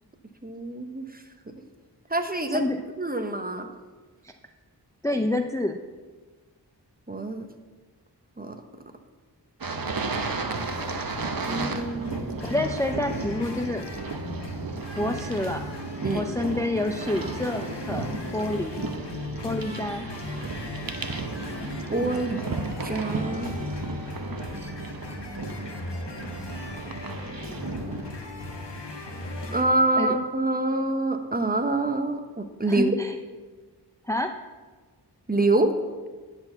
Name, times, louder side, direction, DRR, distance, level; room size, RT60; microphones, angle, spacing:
voice 1, 0.4-1.2 2.1-2.7 3.0-3.7 7.1-7.5 8.4-8.6 11.5-12.3 16.0-16.3 21.9-22.4 22.8-23.6 29.5-33.0 35.3-35.7, right 2 dB, 20° right, 6 dB, 0.9 m, -26 dB
voice 2, 2.5-2.8 4.2-4.3 5.0-5.8 12.4-13.9 15.0-15.6 16.1-18.8 19.4-20.1 30.0-30.1 32.7-33.2 34.1-34.3, left 1 dB, 10° left, 5 dB, 0.5 m, -28 dB
sound 1, 9.6-28.2, right 4 dB, 55° right, 0.9 m, -34 dB
sound 2, 10.5-29.6, left 2 dB, 90° left, 1.2 m, -37 dB
10.0 x 4.5 x 6.9 m, 1.4 s
wide cardioid pair, 45°, 41 cm